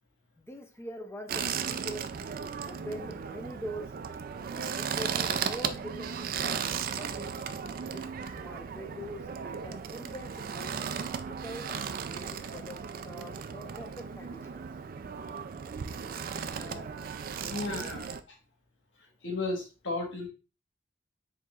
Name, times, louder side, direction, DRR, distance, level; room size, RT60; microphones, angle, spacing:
voice 1, 0.4-2.1 2.6-3.9 4.5-7.3 7.8-8.0 8.4-10.8 11.2-14.7 16.3-16.9 17.4-17.9, equal, 15° left, 4 dB, 0.6 m, -43 dB
sound 1, 1.3-18.2, right 7 dB, 50° right, 0.3 m, -36 dB
voice 2, 17.5-18.0 19.2-20.3, left 2 dB, 90° left, 0 dB, 1.4 m, -33 dB
4.6 x 3.7 x 2.4 m, 0.34 s
head